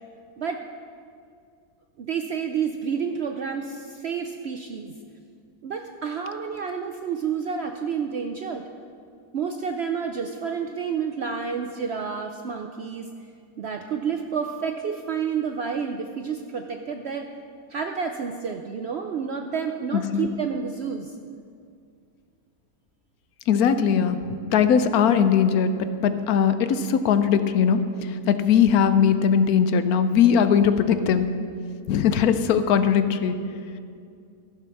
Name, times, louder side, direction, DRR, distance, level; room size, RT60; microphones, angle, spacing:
voice 1, 2.0-4.9 5.6-8.6 9.3-13.1 13.6-17.3 17.7-21.1, right 6 dB, 65° right, 5 dB, 0.6 m, -29 dB
voice 2, 19.9-20.3 23.5-24.2 24.5-25.7 26.0-27.8 28.3-31.3 31.9-33.3, left 7 dB, 75° left, 10 dB, 1.1 m, -20 dB
15.0 x 6.9 x 5.9 m, 2.3 s
omnidirectional pair, 1.7 m